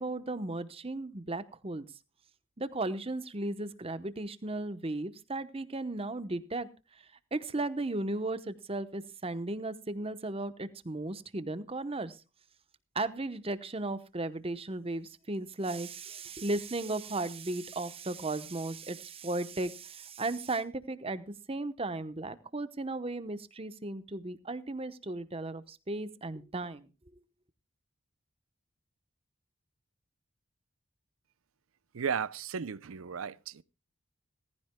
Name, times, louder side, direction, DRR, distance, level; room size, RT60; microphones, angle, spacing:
voice 1, 0.0-1.8 2.6-6.7 7.3-12.2 12.9-26.9, right 2 dB, 30° right, 0.9 m, -35 dB
voice 2, 31.9-33.6, right 6 dB, 90° right, 0.6 m, -35 dB
18.0 x 15.0 x 2.2 m
head